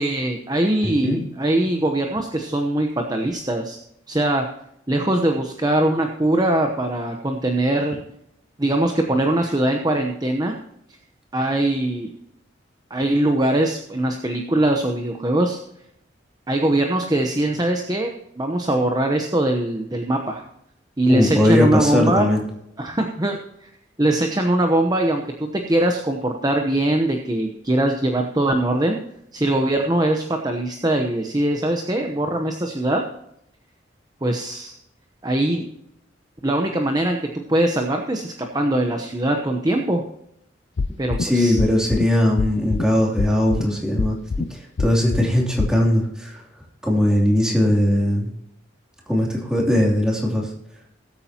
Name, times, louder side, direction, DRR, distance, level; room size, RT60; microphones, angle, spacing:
voice 1, 0.0-3.8 4.1-4.4 4.9-8.0 8.6-10.5 11.3-12.1 12.9-15.6 16.5-18.1 18.4-20.4 21.0-22.3 22.8-23.7 24.0-25.2 25.7-29.0 29.3-33.0 34.2-34.7 35.2-35.7 36.4-40.0 41.0-41.6, right 1 dB, 20° right, 3 dB, 0.9 m, -21 dB
voice 2, 0.8-1.2 21.1-22.4 41.2-46.4 46.8-48.3 49.1-50.5, left 1 dB, 5° right, -2 dB, 2.9 m, -19 dB
sound 1, 40.8-41.2 41.6-42.0 42.4-42.8 43.2-43.6 44.0-44.4 44.8-45.3 45.6-45.7, left 4 dB, 70° left, 0.5 m, -23 dB
20.0 x 8.6 x 2.9 m, 0.79 s
head